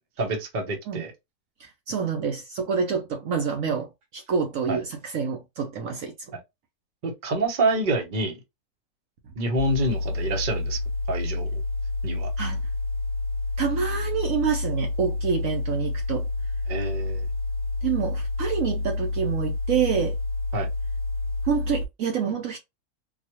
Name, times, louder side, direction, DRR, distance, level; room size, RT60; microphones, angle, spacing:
voice 1, 0.2-1.1 4.7-4.8 7.0-8.4 9.3-10.8 11.1-11.6 12.0-12.3 16.7-17.3 20.5-20.7, right 2 dB, 40° right, 0.9 m, -27 dB
voice 2, 1.6-6.1 12.4-12.6 13.6-16.3 17.8-20.2 21.4-22.6, right 6 dB, 65° right, 1.0 m, -27 dB
sound 1, 9.6-21.8, left 2 dB, 40° left, 1.0 m, -29 dB
4.0 x 2.4 x 2.9 m
omnidirectional pair, 1.6 m